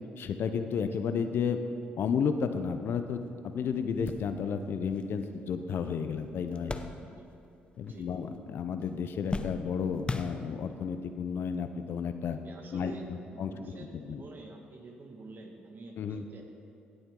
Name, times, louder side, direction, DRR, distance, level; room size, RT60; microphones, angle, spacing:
voice 1, 0.2-1.6 2.0-6.8 7.8-12.4 12.7-14.2 16.0-16.2, left 6 dB, 65° left, 8 dB, 0.6 m, -32 dB
sound 1, 3.2-3.3 3.7-7.5 7.8-8.5 8.8-10.9 11.6-11.7 13.0-13.2, left 3 dB, 25° left, 0.7 m, -40 dB
voice 2, 7.8-8.1 12.4-16.4, right 2 dB, 50° right, 2 dB, 1.8 m, -48 dB
16.0 x 7.9 x 3.8 m, 2.7 s
supercardioid pair, 55°, 4 cm